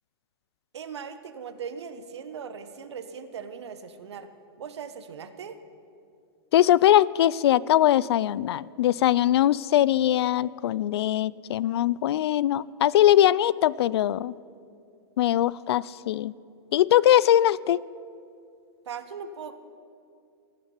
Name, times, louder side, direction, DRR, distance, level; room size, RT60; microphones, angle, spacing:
voice 1, 0.7-4.3 4.6-5.6 18.8-19.5, right 6 dB, 85° right, 10 dB, 1.2 m, -39 dB
voice 2, 6.5-14.3 15.2-16.3 16.7-17.8, left 12 dB, 70° left, 22 dB, 0.4 m, -21 dB
17.0 x 6.7 x 9.8 m, 2.4 s
hypercardioid pair, 145°, 14 cm